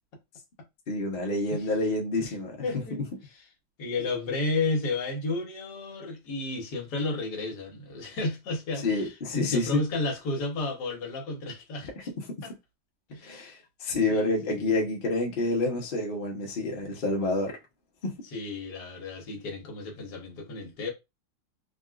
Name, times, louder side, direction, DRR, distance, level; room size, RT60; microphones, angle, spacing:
voice 1, 0.9-2.8 8.8-9.8 13.2-17.6 18.0-18.1, left 2 dB, 45° left, 0.7 m, -28 dB
voice 2, 2.6-3.0 3.8-12.1 12.4-12.5 13.1-13.6 14.1-14.7 18.3-20.9, left 3 dB, 65° left, 1.5 m, -32 dB
3.7 x 2.3 x 2.3 m
omnidirectional pair, 2.0 m